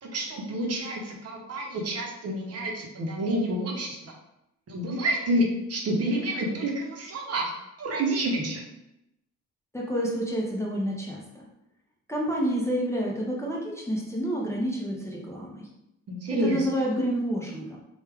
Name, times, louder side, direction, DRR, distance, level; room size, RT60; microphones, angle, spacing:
voice 1, 0.0-4.1 4.7-7.5 7.8-8.6 16.1-16.7, right 1 dB, 55° right, 0 dB, 0.7 m, -28 dB
voice 2, 9.7-11.4 12.1-15.7 16.3-17.8, equal, 10° left, -3 dB, 0.6 m, -29 dB
3.3 x 2.3 x 3.4 m, 0.84 s
cardioid pair, 125°, 30 cm